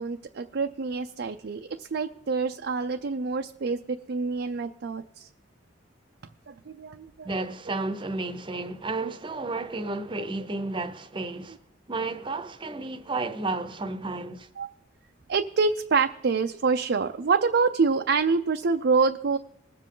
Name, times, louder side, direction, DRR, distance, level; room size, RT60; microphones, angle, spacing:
voice 1, 0.0-5.3 6.5-7.3 14.6-14.7 15.3-19.4, right 4 dB, 60° right, 0.5 m, -26 dB
voice 2, 7.2-11.6 11.9-14.5, right 3 dB, 25° right, 0.8 m, -32 dB
21.0 x 7.5 x 3.8 m
head